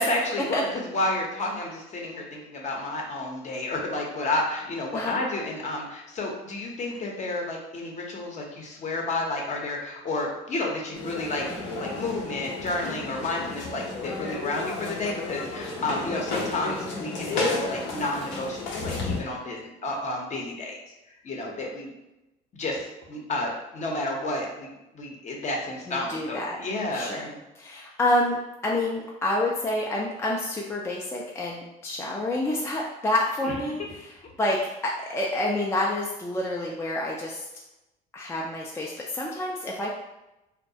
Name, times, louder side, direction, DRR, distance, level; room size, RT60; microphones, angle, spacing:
voice 1, 0.0-11.5 11.8-20.8 21.2-21.9 22.5-27.4 33.4-33.5, left 2 dB, 40° left, -1 dB, 0.7 m, -31 dB
sound 1, 10.9-19.2, left 3 dB, 80° left, 0.6 m, -32 dB
voice 2, 25.9-26.6 26.9-27.3 27.6-34.1 34.4-37.5 38.1-39.9, left 1 dB, 15° left, -3 dB, 0.3 m, -28 dB
2.3 x 2.1 x 2.6 m, 0.95 s
supercardioid pair, 90°, 19 cm